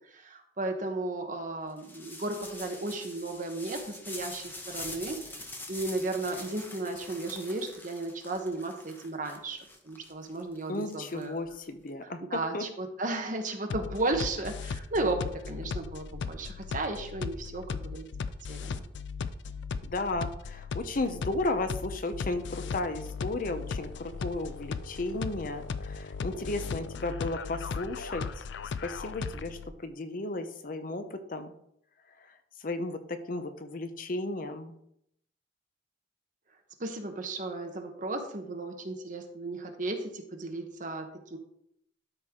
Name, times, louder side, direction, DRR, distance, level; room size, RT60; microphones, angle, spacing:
voice 1, 0.1-5.4 5.7-11.3 12.0-18.0 18.5-18.8 36.8-41.4, right 2 dB, 45° right, 5 dB, 1.2 m, -34 dB
sound 1, 1.8-11.6, left 2 dB, 10° left, 1.0 m, -44 dB
voice 2, 10.7-12.6 19.8-28.4 28.8-31.5 32.6-34.7, left 2 dB, 50° left, 9 dB, 0.7 m, -34 dB
sound 2, 13.7-29.7, left 5 dB, 80° left, 0.4 m, -37 dB
12.5 x 4.6 x 3.7 m, 0.74 s
head